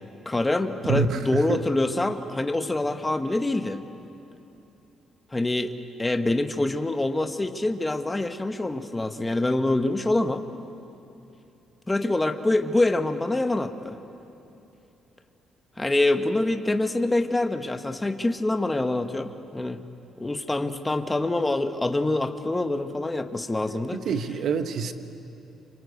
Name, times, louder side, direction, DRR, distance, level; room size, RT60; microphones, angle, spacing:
voice 1, 0.2-3.8 5.3-10.4 11.9-14.0 15.8-19.8 20.2-24.0, left 2 dB, 10° left, 8 dB, 1.0 m, -25 dB
voice 2, 0.9-1.6 23.9-24.9, right 5 dB, 55° right, 10 dB, 1.2 m, -27 dB
28.0 x 25.5 x 8.2 m, 2.9 s
cardioid pair, 155°, 0 cm